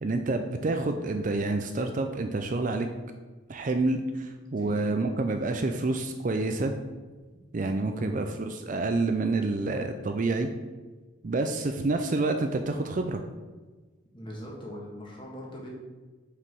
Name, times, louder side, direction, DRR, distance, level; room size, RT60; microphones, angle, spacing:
voice 1, 0.0-2.9 3.5-6.7 7.5-10.5 11.2-13.2, right 2 dB, 40° right, 6 dB, 0.4 m, -28 dB
voice 2, 4.6-5.1 7.8-8.1 14.1-15.7, equal, 25° left, -2 dB, 1.6 m, -40 dB
6.0 x 4.9 x 6.1 m, 1.3 s
head